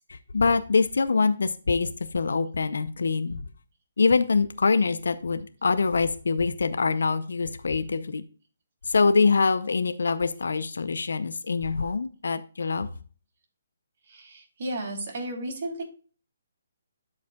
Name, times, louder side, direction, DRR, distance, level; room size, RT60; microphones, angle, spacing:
voice 1, 0.1-3.4 4.0-8.2 8.8-12.9, left 4 dB, 75° left, 12 dB, 0.6 m, -24 dB
voice 2, 14.0-15.8, right 1 dB, 50° right, 1 dB, 3.1 m, -34 dB
12.5 x 4.8 x 2.3 m, 0.39 s
figure-of-eight pair, 145°, 0 cm